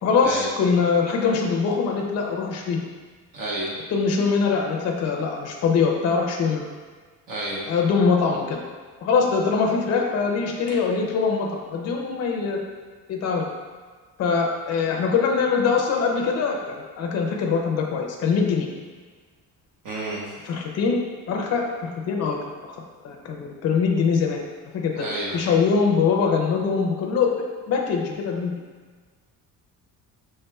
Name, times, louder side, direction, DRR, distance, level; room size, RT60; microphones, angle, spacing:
voice 1, 0.0-2.8 3.9-6.6 7.7-8.6 9.0-12.6 13.1-13.5 14.2-18.7 20.4-21.0 21.3-22.5 23.0-24.4 24.7-24.9 25.3-27.3 27.7-28.5, left 5 dB, 45° left, 0 dB, 0.5 m, -23 dB
voice 2, 3.3-3.7 7.3-7.7 19.8-20.3 25.0-25.4, right 1 dB, 60° right, -4 dB, 1.2 m, -30 dB
5.4 x 3.5 x 2.3 m, 1.5 s
cardioid pair, 180°, 37 cm